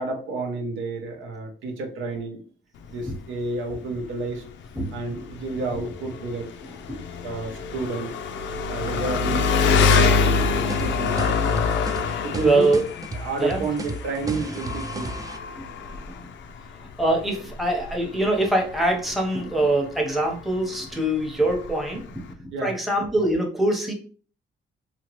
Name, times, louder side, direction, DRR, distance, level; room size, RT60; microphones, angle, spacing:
voice 1, 0.0-2.4 2.9-4.4 4.9-6.5 7.2-8.1 8.7-11.8 12.2-12.8 13.1-15.1 22.5-22.8, right 3 dB, 80° right, 1 dB, 0.8 m, -31 dB
Engine, 2.8-22.3, left 5 dB, 70° left, 0.4 m, -26 dB
voice 2, 4.8-5.1 12.4-12.8 13.4-13.6 15.6-16.1 17.0-22.1 22.6-23.9, right 1 dB, ahead, 0 dB, 0.8 m, -23 dB
sound 1, 10.4-15.4, right 2 dB, 20° right, 0.3 m, -34 dB
2.9 x 2.3 x 3.0 m, 0.42 s
cardioid pair, 90°, 20 cm